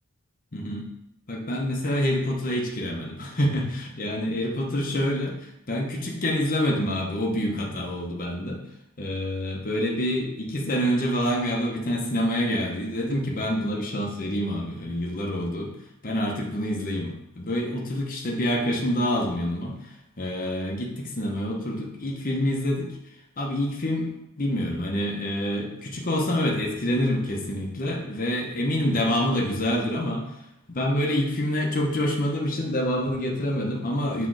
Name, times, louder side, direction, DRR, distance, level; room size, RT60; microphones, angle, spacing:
voice 1, 0.5-0.9 1.3-8.6 9.0-15.7 16.0-22.9 23.4-24.1 24.4-30.4 30.7-34.3, equal, 40° left, -2 dB, 1.0 m, -27 dB
6.3 x 3.4 x 4.7 m, 0.84 s
head